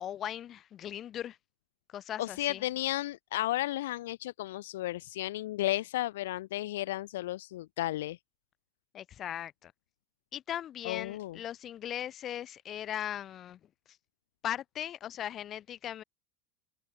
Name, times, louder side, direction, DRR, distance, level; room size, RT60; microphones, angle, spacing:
voice 1, 0.0-1.4 1.9-2.6 8.9-9.7 10.3-13.6 14.4-16.0, left 11 dB, 40° left, 8.0 m, -38 dB
voice 2, 2.2-8.2 10.8-11.4, left 15 dB, 75° left, 2.2 m, -33 dB
hypercardioid pair, 80°, 0 cm